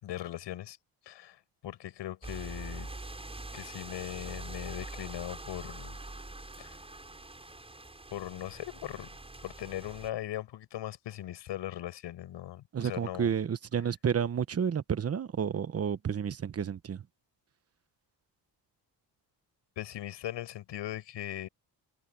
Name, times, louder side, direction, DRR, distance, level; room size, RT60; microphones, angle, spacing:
voice 1, 0.0-0.8 1.0-2.9 3.5-5.9 6.6-6.8 8.1-9.1 9.4-13.3 19.8-21.5, left 13 dB, 75° left, 6.7 m, -39 dB
sound 1, 2.2-10.1, right 2 dB, 15° right, 6.7 m, -44 dB
voice 2, 12.7-17.0, right 7 dB, 35° right, 1.1 m, -31 dB
cardioid pair, 105°, 43 cm